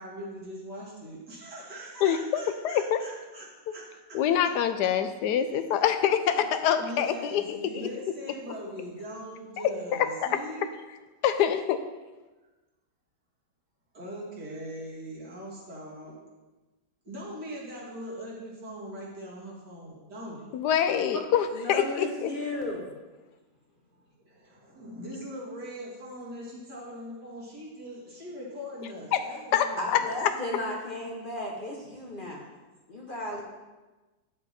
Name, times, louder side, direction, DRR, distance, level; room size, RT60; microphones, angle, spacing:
voice 1, 0.0-3.5 3.7-3.8 4.1-4.2 5.4-5.5 6.3-6.5 6.7-10.6 13.9-16.3 17.0-20.5 24.2-30.6, equal, 70° right, -5 dB, 2.7 m, -41 dB
voice 2, 2.0-3.0 4.1-7.9 11.2-11.8 20.5-22.3 29.1-29.2 29.5-29.7 30.2-30.3, left 9 dB, 75° left, 9 dB, 1.1 m, -25 dB
voice 3, 21.5-23.0 29.8-32.5 32.9-33.4, left 1 dB, 35° left, -1 dB, 0.9 m, -34 dB
9.1 x 7.0 x 4.1 m, 1.2 s
omnidirectional pair, 1.8 m